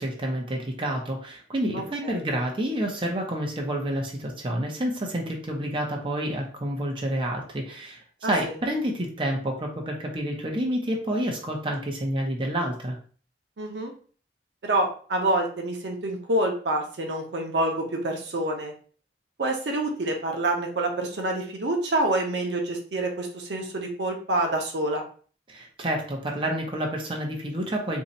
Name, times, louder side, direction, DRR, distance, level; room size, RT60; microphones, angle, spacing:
voice 1, 0.0-13.0 25.5-28.0, right 1 dB, 30° right, 0 dB, 0.7 m, -29 dB
voice 2, 1.7-2.2 8.2-8.5 13.6-13.9 14.6-18.7 19.4-25.0, right 1 dB, 75° right, 2 dB, 0.7 m, -27 dB
2.7 x 2.3 x 4.0 m, 0.42 s
head